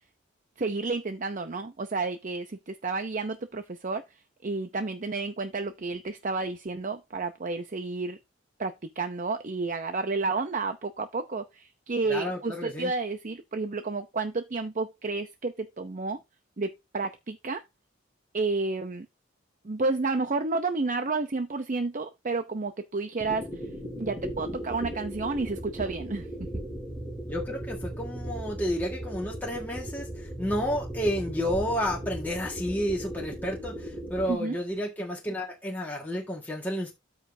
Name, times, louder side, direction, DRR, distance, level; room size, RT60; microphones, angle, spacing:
voice 1, 0.6-4.0 4.4-8.2 8.6-16.2 16.6-17.6 18.3-19.1 19.6-23.5 24.0-26.5 34.3-34.6, right 3 dB, 40° right, 0.6 m, -31 dB
voice 2, 12.1-12.9 27.3-36.9, equal, 10° left, 1.7 m, -31 dB
sound 1, 23.2-34.3, right 1 dB, 15° right, 2.3 m, -37 dB
13.0 x 5.0 x 2.7 m
head